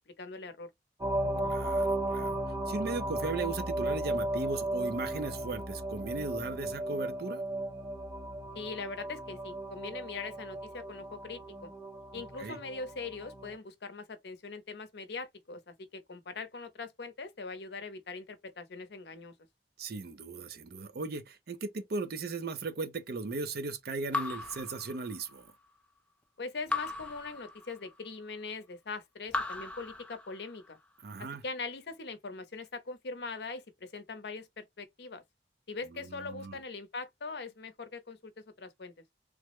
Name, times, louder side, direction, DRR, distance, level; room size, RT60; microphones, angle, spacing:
voice 1, 0.1-0.7 8.5-11.7 12.1-19.3 26.4-30.8 31.2-35.2 35.7-38.3 38.6-38.9, left 4 dB, 65° left, 0.7 m, -42 dB
sound 1, 1.0-13.5, right 1 dB, 20° right, 0.8 m, -35 dB
voice 2, 1.4-2.4 2.7-7.4 12.1-12.6 19.8-25.5 31.0-31.4 35.9-36.6, right 3 dB, 55° right, 0.5 m, -37 dB
Raindrop / Drip, 24.1-25.5 26.7-28.1 29.3-30.7, left 3 dB, 5° left, 0.4 m, -37 dB
3.2 x 2.0 x 3.0 m
head